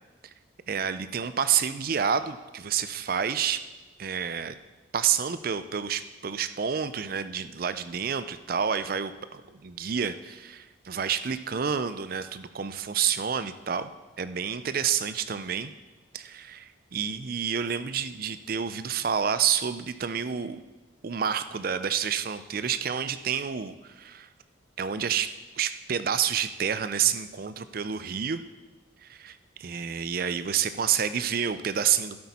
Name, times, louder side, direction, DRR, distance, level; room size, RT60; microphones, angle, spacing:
voice 1, 0.7-3.6 4.0-4.6 4.9-13.9 14.2-15.7 16.1-20.6 21.0-24.3 24.8-28.4 29.0-32.2, right 7 dB, 45° right, 12 dB, 0.4 m, -29 dB
12.0 x 8.3 x 4.2 m, 1.2 s
head